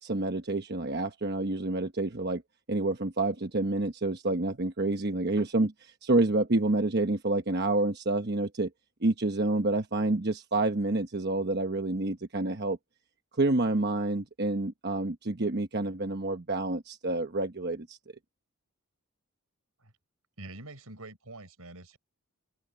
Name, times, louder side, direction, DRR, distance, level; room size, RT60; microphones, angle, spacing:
voice 1, 0.0-2.4 2.7-8.7 9.0-12.8 13.4-18.0, right 2 dB, 45° right, 1.1 m, -28 dB
voice 2, 20.4-22.0, right 2 dB, 85° right, 4.7 m, -45 dB
head